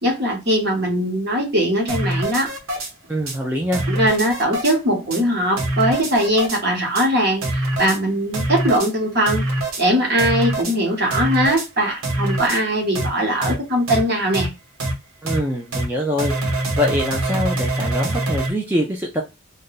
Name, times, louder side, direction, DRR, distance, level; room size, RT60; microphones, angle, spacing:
voice 1, 0.0-2.5 3.9-9.5 9.8-14.5, equal, 50° right, 1.3 m, -20 dB
sound 1, 1.9-2.9 3.3-3.4 3.7-4.7 5.1-5.2 5.6-6.6 6.9-7.1 7.4-8.0 8.3-8.9 9.3-9.8 10.2-10.7 11.1-11.7 12.0-12.6 12.9-13.1 13.4-13.5 13.9-14.0 14.3-14.5 14.8-14.9 15.3-15.4 15.7-15.9 16.2-18.5, right 2 dB, 90° right, 1.0 m, -24 dB
voice 2, 3.1-3.8 15.2-16.3 16.7-19.2, left 1 dB, 10° right, 0.4 m, -23 dB
2.6 x 2.2 x 3.8 m
head